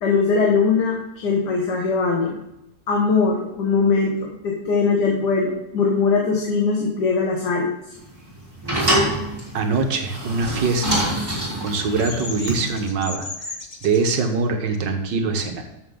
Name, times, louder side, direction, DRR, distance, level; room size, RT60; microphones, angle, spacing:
voice 1, 0.0-2.4 2.9-7.7, left 4 dB, 70° left, -1 dB, 1.9 m, -21 dB
sound 1, 7.9-12.9, right 1 dB, 10° right, 3.3 m, -25 dB
voice 2, 9.5-11.1 11.6-13.3 13.8-15.6, right 4 dB, 80° right, 5 dB, 1.8 m, -23 dB
Bird vocalization bird call bird song, 10.3-14.0, left 3 dB, 40° left, 1.3 m, -35 dB
13.0 x 7.1 x 3.8 m, 0.89 s
omnidirectional pair, 1.9 m